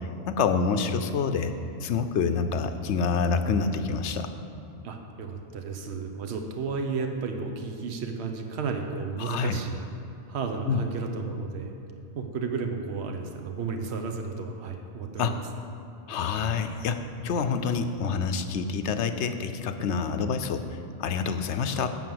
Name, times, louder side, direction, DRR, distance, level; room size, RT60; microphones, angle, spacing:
voice 1, 0.0-1.5 1.8-4.3 9.2-9.6 10.7-10.8 15.2-15.3 16.1-22.0, left 5 dB, 80° left, 9 dB, 1.0 m, -27 dB
voice 2, 4.8-9.8 10.3-11.7 12.1-15.4, right 5 dB, 70° right, 4 dB, 1.1 m, -33 dB
10.5 x 5.5 x 7.8 m, 2.7 s
omnidirectional pair, 1.1 m